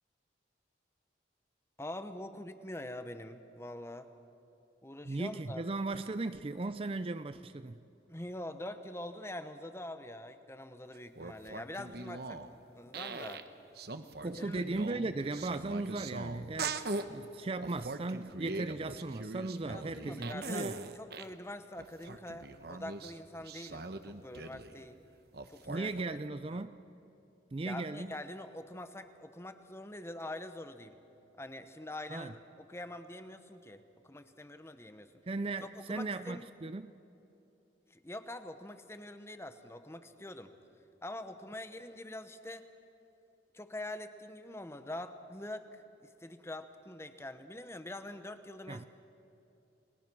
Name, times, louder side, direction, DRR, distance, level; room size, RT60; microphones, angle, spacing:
voice 1, 1.8-4.1 4.8-5.6 8.1-13.4 14.3-14.6 19.6-25.0 25.5-26.2 26.5-26.6 27.6-31.0 31.4-35.1 35.9-36.5 37.9-40.5 41.0-42.7 43.5-48.8, left 1 dB, 15° left, 9 dB, 1.0 m, -45 dB
voice 2, 5.0-7.8 14.2-16.8 17.1-20.9 25.7-26.8 27.5-28.1 32.1-32.3 35.3-36.9 48.7-48.8, right 2 dB, 30° right, 11 dB, 0.4 m, -37 dB
sound 1, 10.9-12.5 12.9-13.5 13.8-17.1 17.6-21.3 21.8-24.8 25.3-26.0, right 3 dB, 55° right, 1.0 m, -41 dB
30.0 x 20.5 x 6.2 m, 2.8 s
head